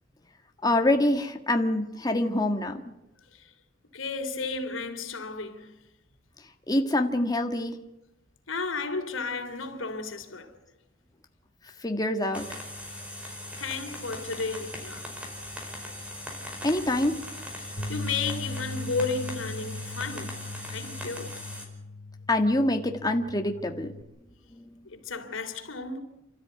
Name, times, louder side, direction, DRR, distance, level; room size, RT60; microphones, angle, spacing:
voice 1, 0.6-2.8 6.7-7.8 11.8-12.6 16.6-17.2 22.3-23.9 24.5-24.6, left 1 dB, 20° left, 1.7 m, -25 dB
voice 2, 3.9-5.7 8.5-10.5 13.2-15.1 17.6-20.4 20.7-21.3 24.8-26.0, left 4 dB, 85° left, 3.4 m, -33 dB
sound 1, 12.3-21.7, left 1 dB, 5° right, 5.1 m, -40 dB
sound 2, 17.8-24.0, left 2 dB, 55° left, 3.9 m, -39 dB
29.5 x 13.5 x 9.5 m
head